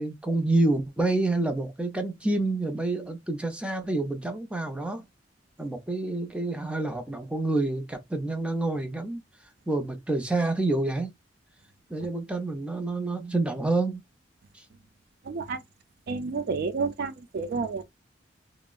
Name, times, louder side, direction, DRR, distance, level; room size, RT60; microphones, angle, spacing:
voice 1, 0.0-5.0 5.6-9.2 9.7-11.1 11.9-14.0 14.5-14.6, right 2 dB, 5° right, 0.6 m, -28 dB
voice 2, 15.3-15.6 16.1-17.8, right 4 dB, 55° right, 0.4 m, -30 dB
3.4 x 2.0 x 2.3 m
head